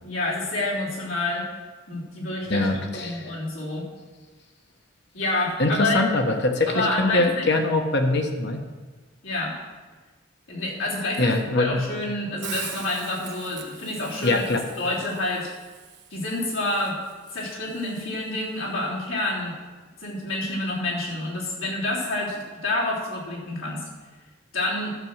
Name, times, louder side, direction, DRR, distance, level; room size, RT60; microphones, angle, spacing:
voice 1, 0.0-1.5 1.9-2.7 2.9-3.9 5.1-6.0 6.7-7.5 9.2-9.5 10.5-14.4 14.8-15.5 16.1-17.0 17.3-19.5 20.0-23.9 24.5-25.0, left 2 dB, 80° left, -5 dB, 3.4 m, -28 dB
voice 2, 2.5-3.3 5.6-8.6 11.2-11.8 14.2-14.6, left 2 dB, 55° left, 4 dB, 1.3 m, -23 dB
Hiss, 12.4-18.5, right 8 dB, 60° right, 1.3 m, -43 dB
12.0 x 6.2 x 7.4 m, 1.3 s
head